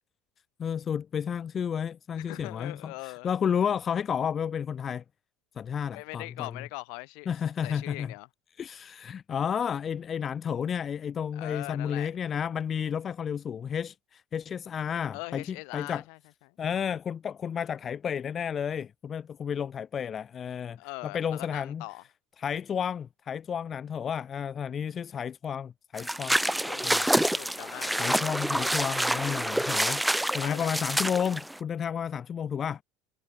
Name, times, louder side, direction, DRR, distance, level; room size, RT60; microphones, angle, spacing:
voice 1, 0.6-5.0 5.6-6.5 7.3-8.1 8.6-16.0 16.6-20.8 21.0-21.8 22.4-26.4 26.8-27.0 28.0-32.8, left 8 dB, 35° left, 0.6 m, -32 dB
voice 2, 2.2-3.3 5.9-8.3 11.3-12.1 15.1-16.2 16.5-16.6 20.8-22.0 26.5-28.1 30.4-30.7, left 37 dB, 75° left, 5.4 m, -41 dB
sound 1, 26.0-31.6, right 1 dB, 5° right, 0.9 m, -27 dB
supercardioid pair, 105°, 0 cm